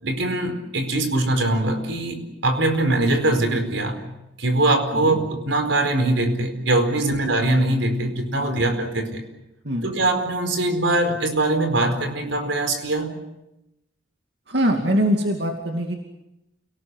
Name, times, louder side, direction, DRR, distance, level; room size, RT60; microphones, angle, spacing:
voice 1, 0.0-4.0 4.4-9.2 9.8-13.2, right 2 dB, 85° right, 6 dB, 4.6 m, -22 dB
voice 2, 14.5-16.0, equal, 65° right, 2 dB, 2.6 m, -23 dB
29.5 x 18.5 x 8.0 m, 0.92 s
head